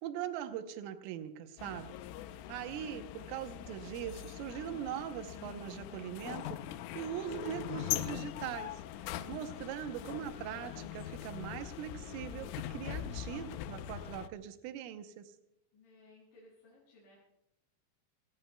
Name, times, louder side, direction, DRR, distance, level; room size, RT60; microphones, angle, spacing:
voice 1, 0.0-2.0 2.5-6.6 6.9-8.8 9.3-15.3, right 10 dB, 85° right, 8 dB, 3.5 m, -41 dB
sound 1, 1.6-14.3, left 12 dB, 85° left, 3.2 m, -42 dB
voice 2, 15.7-17.2, left 2 dB, 70° left, -8 dB, 8.4 m, -62 dB
28.0 x 19.0 x 2.2 m, 0.81 s
omnidirectional pair, 5.7 m